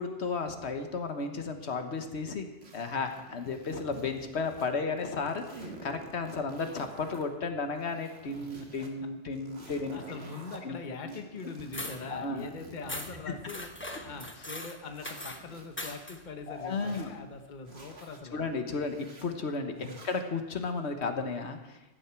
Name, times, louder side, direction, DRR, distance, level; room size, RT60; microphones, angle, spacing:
voice 1, 0.0-2.5 2.7-10.0 10.6-10.8 11.0-11.1 11.4-11.5 12.1-12.5 13.9-14.0 16.5-17.1 18.3-19.7 20.0-21.8, left 4 dB, 80° left, 6 dB, 1.4 m, -34 dB
sound 1, 2.6-4.7 5.0-7.3 7.7-8.9 9.3-10.6 11.1-14.3 14.8-16.0 16.5-17.1 17.6-18.2 18.8-19.3 19.8-20.3, right 2 dB, 70° right, 2.0 m, -50 dB
voice 2, 8.6-8.9 9.6-18.4 19.8-20.0, left 4 dB, 45° left, 6 dB, 1.2 m, -43 dB
sound 2, 11.7-12.0 12.9-13.2 13.5-15.4 15.8-16.2, left 1 dB, 10° left, 1.0 m, -40 dB
15.5 x 11.5 x 4.5 m, 1.1 s
omnidirectional pair, 1.1 m